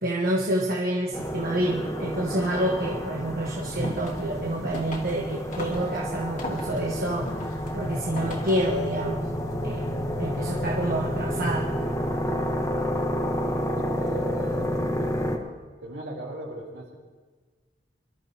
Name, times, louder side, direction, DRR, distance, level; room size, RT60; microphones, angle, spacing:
voice 1, 0.0-7.4 7.7-9.3 9.6-9.9 10.2-11.7, right 1 dB, 55° right, -3 dB, 1.4 m, -28 dB
sound 1, 1.1-15.4, equal, 20° left, 1.2 m, -30 dB
sound 2, 3.6-8.8, left 1 dB, 50° left, 2.5 m, -39 dB
voice 2, 12.2-12.7 13.8-15.2 15.8-16.9, right 1 dB, 75° right, -2 dB, 4.1 m, -39 dB
24.5 x 13.0 x 3.0 m, 1.4 s
head